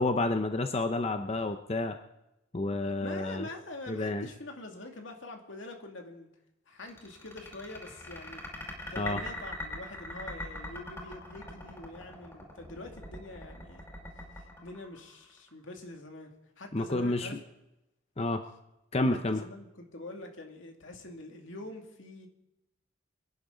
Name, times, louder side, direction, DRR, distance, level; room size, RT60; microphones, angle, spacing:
voice 1, 0.0-2.0 2.5-3.5 3.9-4.3 9.0-9.2 16.7-17.3 18.2-18.4 18.9-19.4, left 2 dB, 30° left, 7 dB, 0.7 m, -29 dB
voice 2, 3.0-6.3 6.7-8.4 8.9-13.8 14.3-17.4 19.3-22.3, left 2 dB, 70° left, 3 dB, 2.5 m, -45 dB
sound 1, 6.8-15.5, left 1 dB, 15° left, 5.2 m, -41 dB
24.5 x 11.0 x 3.9 m, 0.93 s
head